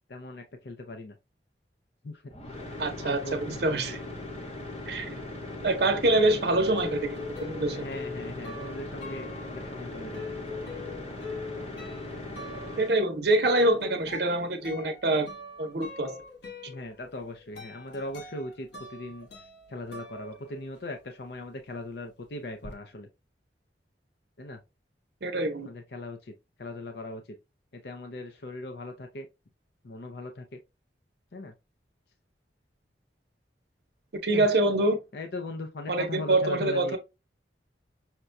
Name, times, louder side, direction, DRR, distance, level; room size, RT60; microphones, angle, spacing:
voice 1, 0.1-1.1 2.0-2.2 3.0-4.0 6.3-6.4 7.6-10.2 16.7-19.3 19.7-23.1 24.4-24.6 25.7-26.3 26.6-27.2 27.7-29.3 29.8-30.6 31.3-31.5 34.3-34.5 35.1-37.0, left 1 dB, 65° left, 0.5 m, -39 dB
sound 1, 2.3-13.0, left 2 dB, 35° left, 0.9 m, -39 dB
voice 2, 2.8-4.0 4.9-5.2 5.6-7.8 12.8-15.3 15.6-16.2 25.2-25.7 34.2-35.0 35.9-37.0, right 2 dB, 65° right, 0.7 m, -25 dB
sound 2, 6.2-21.0 21.3-22.7, left 3 dB, 85° left, 1.1 m, -43 dB
5.8 x 2.2 x 2.5 m
head